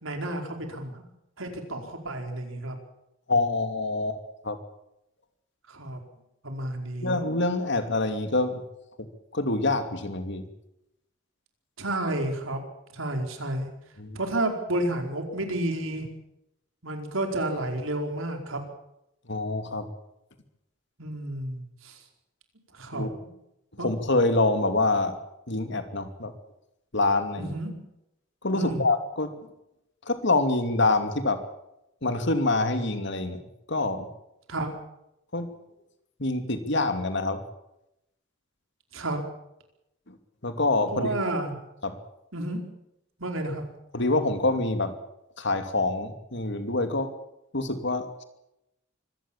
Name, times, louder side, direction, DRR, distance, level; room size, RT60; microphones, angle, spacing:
voice 1, 0.0-1.0 1.4-2.8 5.7-6.0 6.4-7.2 11.8-12.6 12.9-13.7 14.1-16.1 16.8-18.6 21.0-22.0 22.7-23.1 23.8-23.9 27.4-27.7 28.5-28.8 34.5-34.7 38.9-39.2 40.9-41.5 42.3-42.6 43.2-43.6, right 1 dB, 80° right, 4 dB, 4.9 m, -31 dB
voice 2, 3.3-4.6 7.0-8.6 9.0-9.1 9.3-10.5 14.0-14.2 19.3-19.9 22.9-23.1 23.8-25.2 25.5-26.3 26.9-27.5 28.4-29.3 30.1-31.4 32.0-34.1 35.3-35.5 36.2-37.4 40.1-40.2 40.4-41.1 41.8-42.0 43.9-44.9 45.4-47.1 47.5-48.2, left 2 dB, 60° left, 8 dB, 2.8 m, -26 dB
24.5 x 17.0 x 7.4 m, 0.84 s
head